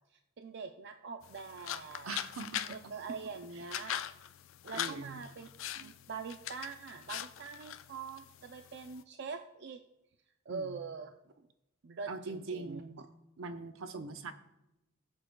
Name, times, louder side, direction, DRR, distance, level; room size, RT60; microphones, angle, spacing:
voice 1, 0.4-2.1 2.7-4.0 4.6-5.5 5.8-9.8 10.5-11.1 11.4-11.5 11.8-12.8, right 5 dB, 50° right, 6 dB, 0.4 m, -43 dB
sound 1, 1.2-9.0, left 11 dB, 65° left, 0.4 m, -42 dB
voice 2, 2.0-2.8 4.7-5.2 10.5-10.8 12.1-13.0 13.4-14.3, right 3 dB, 75° right, 8 dB, 0.8 m, -42 dB
18.5 x 7.8 x 2.2 m, 0.93 s
head